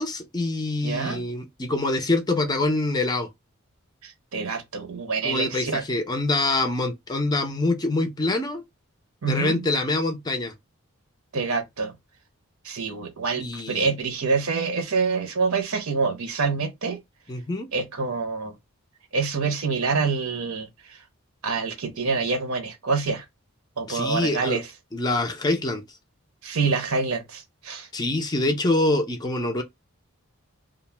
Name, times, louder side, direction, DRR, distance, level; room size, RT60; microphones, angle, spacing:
voice 1, 0.0-3.3 5.2-8.6 9.2-10.5 13.4-13.9 17.3-17.7 23.9-24.6 24.9-25.8 27.9-29.6, left 2 dB, 20° left, 0.4 m, -25 dB
voice 2, 0.8-1.3 4.0-5.8 9.2-9.7 11.3-11.9 12.6-17.0 17.7-18.6 19.1-21.0 21.4-23.2 23.8-24.7 26.4-27.9, right 4 dB, 85° right, 0.8 m, -26 dB
2.3 x 2.1 x 3.1 m
head